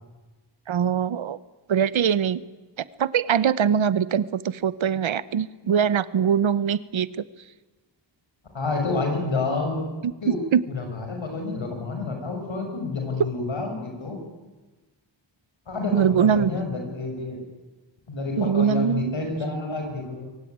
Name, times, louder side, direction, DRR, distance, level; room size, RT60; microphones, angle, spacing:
voice 1, 0.7-1.4 1.7-2.4 3.0-7.2 10.5-10.6 15.9-16.5 18.4-19.3, right 8 dB, 90° right, 18 dB, 0.9 m, -22 dB
voice 2, 8.5-9.9 10.2-10.4 10.7-14.2 15.7-16.0 16.3-17.4 18.1-20.3, left 3 dB, 80° left, 3 dB, 6.3 m, -29 dB
23.0 x 16.0 x 9.5 m, 1.2 s
wide cardioid pair, 85°, 46 cm